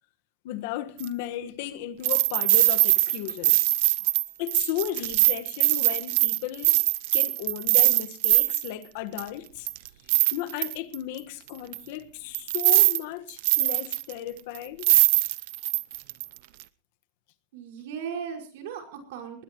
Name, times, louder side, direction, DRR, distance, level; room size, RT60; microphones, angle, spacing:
voice 1, 0.4-3.6 4.0-4.1 4.4-6.8 7.1-9.7 10.3-14.9, left 12 dB, 60° left, 1.5 m, -35 dB
sound 1, 1.0-1.1 2.0-8.7 9.2-9.3 9.7-10.9 11.7-11.8 12.3-13.0 13.3-14.1 14.5-14.6 14.8-16.2 16.6-16.7, right 19 dB, 60° right, 0.8 m, -22 dB
voice 2, 17.5-19.4, right 7 dB, 75° right, 5.7 m, -37 dB
20.5 x 20.0 x 3.1 m
supercardioid pair, 180°, 0 cm